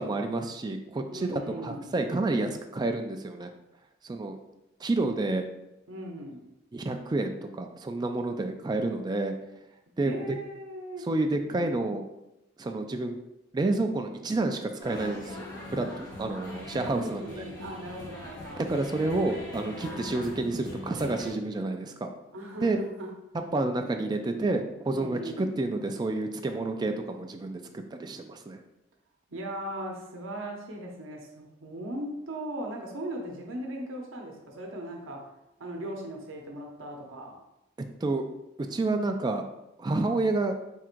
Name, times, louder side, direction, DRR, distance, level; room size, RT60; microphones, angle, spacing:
voice 1, 0.0-3.5 4.0-4.4 4.8-5.4 6.7-9.3 10.0-10.4 11.1-12.0 12.6-13.2 13.5-17.5 18.7-22.1 22.6-22.8 23.5-28.6 38.0-38.2 38.7-39.4 39.8-40.5, right 2 dB, 20° right, 5 dB, 0.3 m, -29 dB
voice 2, 1.1-2.0 5.9-6.4 10.0-11.1 16.9-18.7 22.3-23.1 24.9-25.5 29.3-35.3 35.6-37.4, right 1 dB, 85° right, 1 dB, 0.7 m, -38 dB
sound 1, 14.8-21.3, left 1 dB, 20° left, 1.2 m, -41 dB
3.6 x 2.5 x 4.4 m, 0.90 s
head